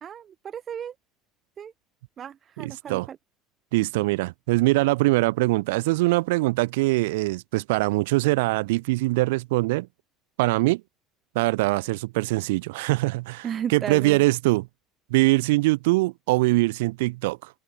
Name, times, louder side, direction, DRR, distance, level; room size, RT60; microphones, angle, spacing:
voice 1, 0.0-0.9 1.6-1.7 2.2-3.2 13.4-14.2, right 8 dB, 40° right, 2.5 m, -34 dB
voice 2, 2.6-3.1 3.7-9.9 10.4-10.8 11.4-14.7 15.1-17.5, right 21 dB, 80° right, 5.4 m, -23 dB
hypercardioid pair, 80°, 0 cm